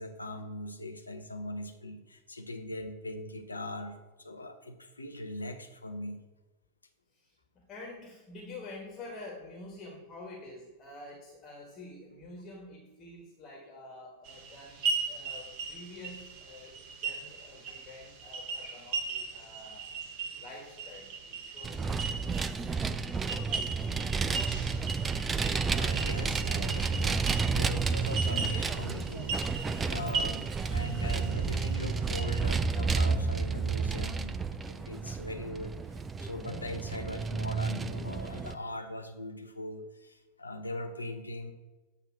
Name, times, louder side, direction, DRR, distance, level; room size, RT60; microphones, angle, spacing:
voice 1, 0.0-6.2 20.2-20.3 25.3-34.4 34.7-41.5, left 1 dB, 80° left, 6 dB, 0.7 m, -41 dB
voice 2, 7.1-19.9 20.4-22.6 23.1-23.7, left 2 dB, 25° left, -2 dB, 1.4 m, -48 dB
sound 1, 14.2-32.4, right 4 dB, 40° right, 1.1 m, -38 dB
Vehicle, 21.6-38.5, right 4 dB, 15° right, 0.3 m, -31 dB
8.1 x 2.8 x 5.8 m, 1.2 s
figure-of-eight pair, 90°, 0 cm